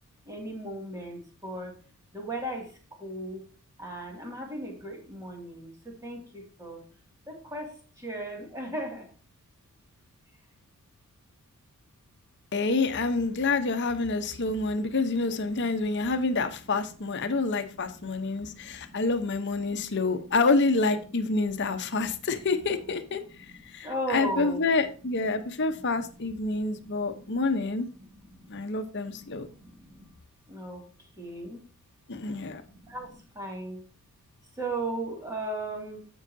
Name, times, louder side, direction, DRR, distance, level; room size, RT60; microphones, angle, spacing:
voice 1, 0.3-1.7 2.1-2.7 3.0-3.4 3.8-6.8 7.3-9.1 14.2-14.8 15.6-16.0 17.3-17.4 17.8-19.0 19.7-20.0 21.7-22.3 23.3-24.6 25.3-25.4 25.7-25.9 26.4-27.6 28.0-28.5 29.0-30.1 30.5-30.8 31.2-31.6 32.6-33.8 34.6-36.0, right 1 dB, 15° right, 0 dB, 2.2 m, -38 dB
voice 2, 12.5-23.2 23.7-27.9 28.5-29.5 32.1-32.6, left 3 dB, 55° left, 8 dB, 0.9 m, -27 dB
15.0 x 5.5 x 2.7 m, 0.38 s
head